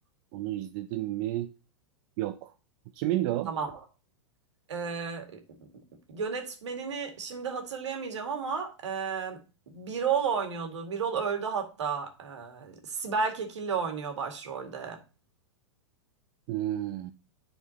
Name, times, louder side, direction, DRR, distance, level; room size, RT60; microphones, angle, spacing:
voice 1, 0.3-1.5 2.2-2.5 2.9-3.5 16.5-17.1, right 14 dB, 45° right, 0.5 m, -31 dB
voice 2, 3.5-3.8 4.7-5.3 6.1-9.4 9.7-15.0, right 6 dB, 75° right, 2.0 m, -32 dB
11.0 x 4.3 x 2.8 m
hypercardioid pair, 105°, 15 cm